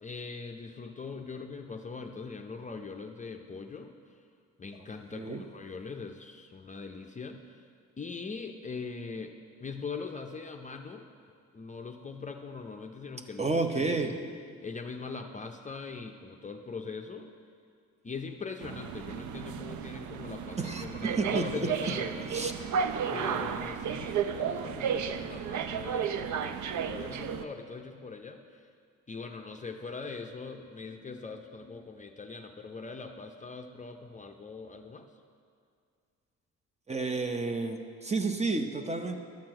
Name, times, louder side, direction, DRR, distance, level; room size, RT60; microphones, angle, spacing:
voice 1, 0.0-3.9 4.6-7.7 8.0-11.1 11.5-14.2 14.6-17.3 18.0-22.7 23.1-28.7 29.1-35.1, left 4 dB, 25° left, 4 dB, 0.5 m, -41 dB
voice 2, 5.1-5.4 13.4-14.1 20.6-21.9 22.3-22.5 36.9-39.2, right 3 dB, 20° right, 6 dB, 0.7 m, -31 dB
sound 1, 18.6-27.4, right 7 dB, 70° right, 0.6 m, -33 dB
11.5 x 4.4 x 7.6 m, 2.2 s
cardioid pair, 90°, 30 cm